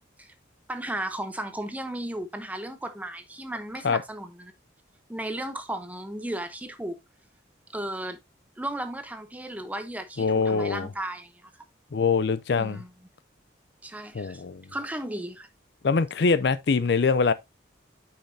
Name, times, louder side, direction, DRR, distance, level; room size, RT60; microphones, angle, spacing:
voice 1, 0.7-4.5 5.1-7.0 7.7-8.2 8.6-11.5 12.6-12.9 13.8-14.4 14.7-15.5, right 1 dB, 10° right, 0.8 m, -35 dB
voice 2, 10.2-10.9 11.9-12.8 14.1-14.6 15.8-17.3, left 4 dB, 60° left, 0.4 m, -23 dB
8.5 x 5.7 x 2.7 m
head